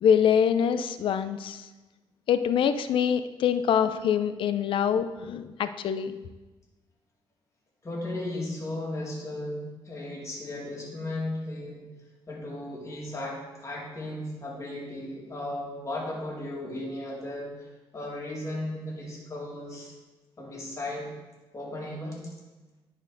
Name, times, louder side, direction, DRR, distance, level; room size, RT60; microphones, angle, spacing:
voice 1, 0.0-1.7 2.3-6.2, left 8 dB, 65° left, 11 dB, 0.5 m, -24 dB
voice 2, 7.8-11.8 12.3-17.7 17.9-19.9 20.4-21.1 21.5-22.2, left 1 dB, 35° left, -3 dB, 2.2 m, -35 dB
10.5 x 4.4 x 3.9 m, 1.2 s
cardioid pair, 90°, 9 cm